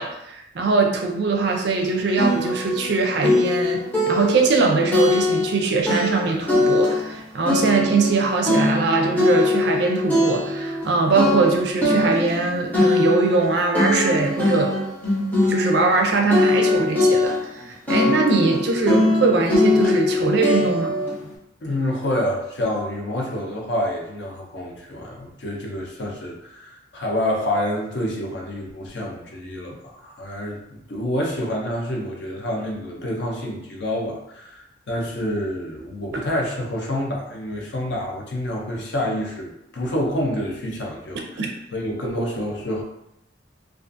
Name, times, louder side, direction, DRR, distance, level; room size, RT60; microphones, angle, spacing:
voice 1, 0.0-3.8 4.1-14.7 15.5-20.9 41.4-41.5 42.2-42.3, right 4 dB, 60° right, 2 dB, 0.4 m, -21 dB
sound 1, 1.5-1.6 2.2-2.9 3.2-5.6 5.9-7.2 7.4-10.9 11.1-16.0 16.3-17.6 17.9-21.1, left 2 dB, 10° left, 0.6 m, -21 dB
voice 2, 21.6-42.8, left 1 dB, 65° left, -1 dB, 0.6 m, -28 dB
2.4 x 2.4 x 2.5 m, 0.82 s
head